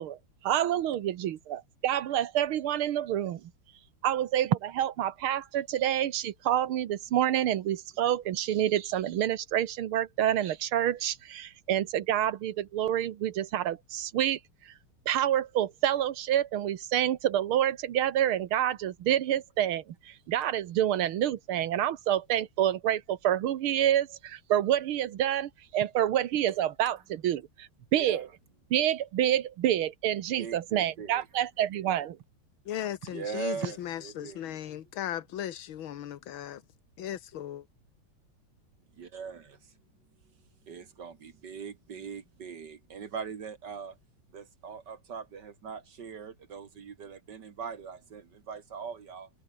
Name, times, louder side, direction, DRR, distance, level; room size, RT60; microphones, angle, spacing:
voice 1, 0.0-3.5 4.0-14.7 15.1-28.3 28.7-32.2, right 11 dB, 85° right, 1.9 m, -28 dB
voice 2, 30.4-31.2 33.1-34.6 39.0-39.6 40.7-44.0 44.3-49.3, right 6 dB, 55° right, 2.0 m, -41 dB
voice 3, 32.7-36.6 37.0-37.6, left 11 dB, 70° left, 2.0 m, -37 dB
omnidirectional pair, 2.3 m